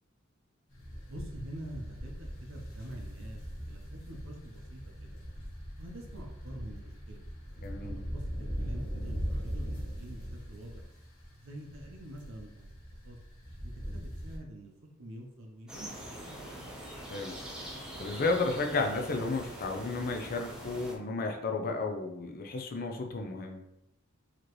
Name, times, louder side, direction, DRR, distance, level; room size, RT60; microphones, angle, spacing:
sound 1, 0.7-14.4, equal, 90° left, 1.3 m, -40 dB
voice 1, 1.1-5.2 5.8-7.3 7.8-8.2 8.6-10.8 11.4-12.8 13.0-13.2 13.6-14.7 15.0-16.6, right 1 dB, 70° right, 1 dB, 0.8 m, -46 dB
voice 2, 7.6-8.0 17.1-17.3 18.0-23.6, left 3 dB, 45° left, 4 dB, 0.5 m, -33 dB
sound 2, 15.7-20.9, equal, 5° right, 0.8 m, -43 dB
4.9 x 3.1 x 3.0 m, 0.84 s
head